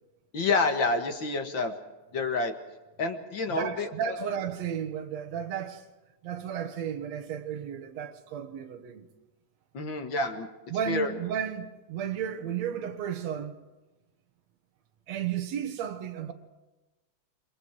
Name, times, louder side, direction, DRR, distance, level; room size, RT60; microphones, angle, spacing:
voice 1, 0.3-1.7 2.1-2.5 3.0-3.9 9.7-10.5 10.9-11.1, left 3 dB, 45° left, 2.1 m, -28 dB
voice 2, 3.5-5.8 6.2-9.1 10.7-13.5 15.1-16.3, right 8 dB, 65° right, 2.6 m, -33 dB
28.5 x 22.0 x 4.7 m
omnidirectional pair, 3.3 m